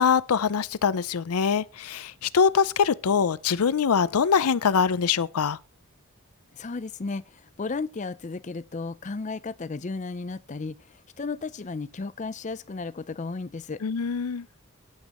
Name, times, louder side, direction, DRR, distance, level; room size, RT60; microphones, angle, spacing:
voice 1, 0.0-5.6 13.8-14.4, left 6 dB, 90° left, 0.5 m, -23 dB
voice 2, 6.5-10.8 11.2-13.8, left 3 dB, 35° left, 0.5 m, -34 dB
15.5 x 8.5 x 3.0 m
head